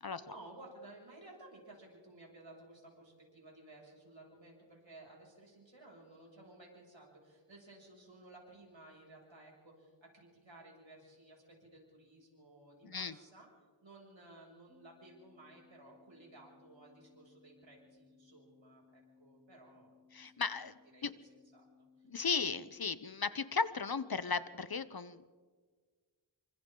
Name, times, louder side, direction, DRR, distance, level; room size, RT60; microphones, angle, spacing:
voice 1, 0.0-13.5 13.8-19.9 20.2-20.3 20.9-21.0 21.3-22.1, right 2 dB, 75° right, -2 dB, 7.1 m, -56 dB
voice 2, 12.8-13.2 20.1-21.1 22.1-25.2, left 5 dB, 50° left, 14 dB, 0.9 m, -36 dB
sound 1, 14.7-22.8, left 5 dB, 20° right, 5.7 m, -65 dB
28.5 x 25.0 x 3.9 m, 1.5 s
wide cardioid pair, 60°, 46 cm